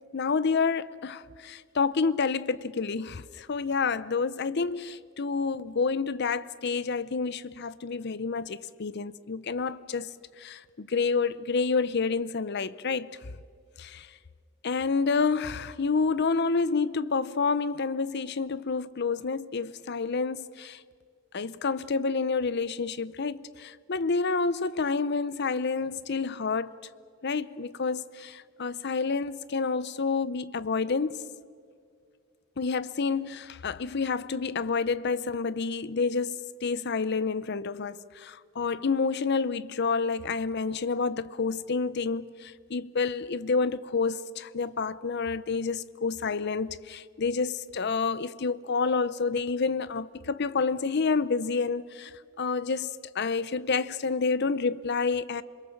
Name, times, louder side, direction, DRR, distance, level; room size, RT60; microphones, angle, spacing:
voice 1, 0.1-10.1 10.4-13.1 13.8-14.1 14.6-20.8 21.3-26.8 27.2-31.2 32.6-55.4, left 4 dB, 55° left, 0.6 m, -29 dB
28.0 x 22.0 x 7.2 m
head